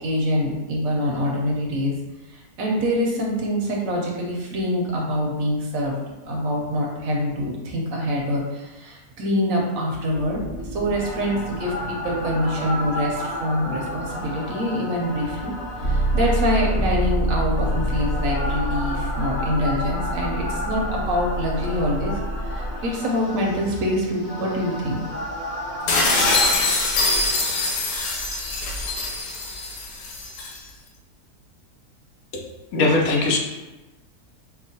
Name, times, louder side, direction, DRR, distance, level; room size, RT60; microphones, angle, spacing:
voice 1, 0.0-2.0 2.3-6.0 6.2-10.4 10.7-15.5 15.8-22.1 22.4-25.0, equal, 70° right, -1 dB, 1.0 m, -25 dB
sound 1, 10.1-26.6, right 1 dB, 25° left, 0.9 m, -28 dB
sound 2, 25.9-30.6, left 3 dB, 90° left, 1.3 m, -23 dB
voice 2, 32.7-33.4, left 2 dB, 70° left, 0 dB, 1.0 m, -19 dB
4.9 x 2.1 x 2.7 m, 1.1 s
omnidirectional pair, 1.6 m